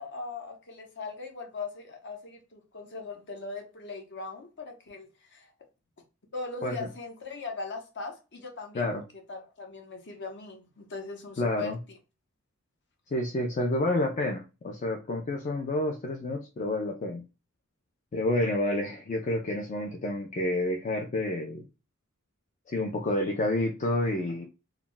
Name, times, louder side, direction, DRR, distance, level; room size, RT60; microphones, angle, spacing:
voice 1, 0.0-5.5 6.3-8.9 9.3-11.8, left 4 dB, 55° left, 0.8 m, -40 dB
voice 2, 11.4-11.8 13.1-17.3 18.1-21.7 22.7-24.5, left 1 dB, 35° left, 0.4 m, -29 dB
2.3 x 2.1 x 3.7 m
head